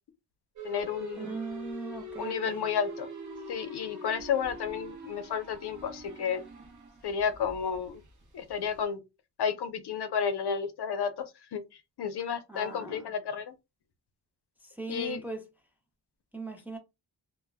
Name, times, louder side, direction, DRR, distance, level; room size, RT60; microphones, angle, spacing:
sound 1, 0.5-8.8, right 2 dB, 45° right, 0.8 m, -44 dB
voice 1, 0.6-1.4 2.2-3.1 3.5-6.4 7.0-8.0 8.3-9.0 9.4-11.1 11.5-11.6 12.0-13.5 14.9-15.2, left 7 dB, 70° left, 0.5 m, -31 dB
voice 2, 1.2-2.7 12.5-13.1 14.6-15.5 16.3-16.8, right 3 dB, 5° right, 0.4 m, -39 dB
2.1 x 2.1 x 3.3 m
wide cardioid pair, 155°, 41 cm